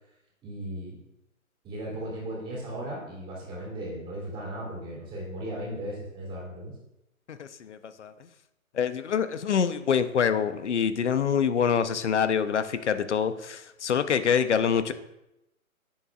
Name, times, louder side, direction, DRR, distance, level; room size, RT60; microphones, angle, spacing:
voice 1, 0.4-1.0 1.6-6.7, right 1 dB, 10° right, -4 dB, 3.3 m, -36 dB
voice 2, 7.3-8.1 8.7-14.9, left 7 dB, 55° left, 11 dB, 1.0 m, -26 dB
19.0 x 7.3 x 2.5 m, 0.88 s
hypercardioid pair, 150°, 43 cm